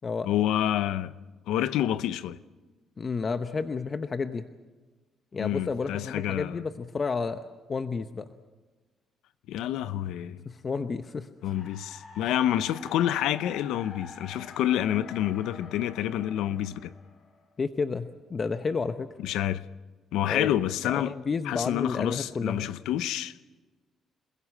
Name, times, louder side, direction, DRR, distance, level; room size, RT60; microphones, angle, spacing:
voice 1, 0.2-1.1 1.5-2.4 5.4-6.6 9.5-10.4 11.4-16.9 19.2-19.6 20.1-21.1 21.4-23.3, left 12 dB, 90° left, 0.7 m, -28 dB
voice 2, 3.0-4.5 5.3-7.4 7.7-8.3 10.5-11.3 17.6-19.1 20.3-20.6 20.8-22.7, left 4 dB, 40° left, 0.8 m, -31 dB
sound 1, 11.4-17.6, left 4 dB, 60° left, 4.2 m, -47 dB
28.5 x 16.0 x 7.4 m
cardioid pair, 90°, 0 cm